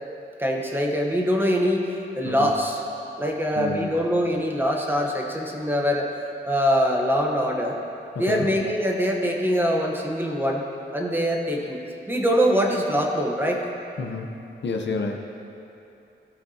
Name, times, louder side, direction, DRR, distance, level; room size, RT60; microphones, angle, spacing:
voice 1, 0.4-2.8 3.2-6.1 6.5-7.8 8.2-10.6 10.9-11.8 12.1-13.6, equal, 10° right, 0 dB, 0.9 m, -23 dB
voice 2, 3.6-3.9 8.2-8.5 14.0-15.2, left 4 dB, 65° left, 3 dB, 0.7 m, -29 dB
15.5 x 6.5 x 2.7 m, 2.8 s
wide cardioid pair, 170°, 20 cm